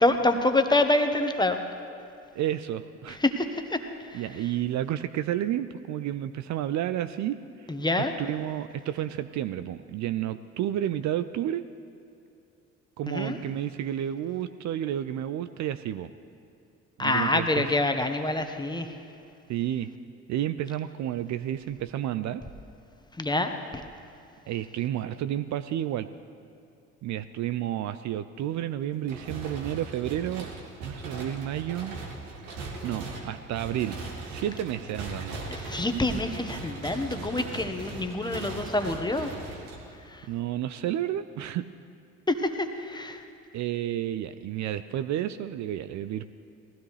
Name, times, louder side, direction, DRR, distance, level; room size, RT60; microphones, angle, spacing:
voice 1, 0.0-1.6 3.1-4.2 7.7-8.1 13.1-13.4 17.0-19.0 23.1-23.8 35.5-39.3 40.0-40.3 42.3-43.2, left 2 dB, 10° left, 6 dB, 1.2 m, -26 dB
voice 2, 2.4-3.2 4.1-7.7 8.2-11.7 13.0-16.1 17.0-17.7 19.5-19.9 20.3-22.4 24.5-26.1 27.0-30.5 30.8-32.0 32.8-35.4 40.3-41.7 43.5-46.3, right 11 dB, 50° right, 12 dB, 0.5 m, -31 dB
sound 1, 29.0-40.2, right 3 dB, 70° right, 2.1 m, -39 dB
20.0 x 15.5 x 3.3 m, 2.6 s
hypercardioid pair, 55°, 36 cm